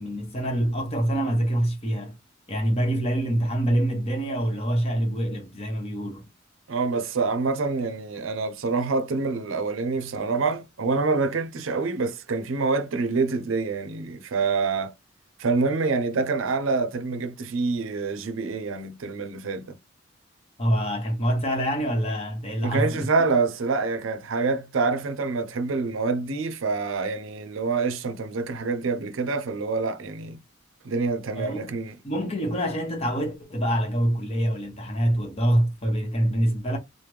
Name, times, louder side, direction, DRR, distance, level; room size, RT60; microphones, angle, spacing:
voice 1, 0.0-2.2 2.5-6.2 20.6-23.1 31.3-31.7 32.0-36.8, right 1 dB, 30° left, 1.0 m, -25 dB
voice 2, 6.7-14.9 15.4-19.8 22.6-30.4 30.8-31.9, right 4 dB, 85° right, 0.5 m, -26 dB
3.3 x 2.1 x 3.1 m
head